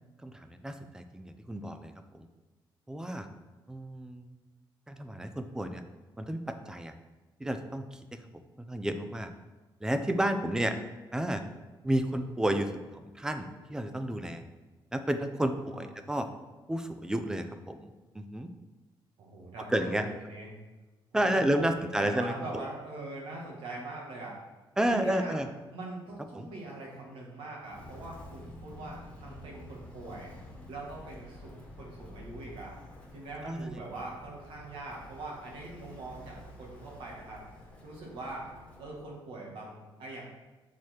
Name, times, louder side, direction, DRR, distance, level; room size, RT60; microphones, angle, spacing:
voice 1, 0.2-2.3 2.9-3.3 3.7-4.4 4.9-5.8 6.2-6.9 7.4-8.2 8.6-9.3 9.8-10.8 11.1-11.4 11.8-14.4 14.9-16.3 16.7-18.5 19.7-20.1 21.1-22.7 24.8-25.5 26.3-26.5 33.4-33.8, right 1 dB, 5° right, 8 dB, 0.4 m, -31 dB
voice 2, 19.2-20.5 21.1-24.4 24.9-25.4 25.7-30.3 30.7-32.7 33.1-37.4 37.8-38.5 38.8-40.2, right 2 dB, 90° right, -2 dB, 2.0 m, -42 dB
Walk footsteps, 27.6-38.9, left 1 dB, 15° left, 1.3 m, -49 dB
7.0 x 4.7 x 4.6 m, 1.2 s
cardioid pair, 160°, 9 cm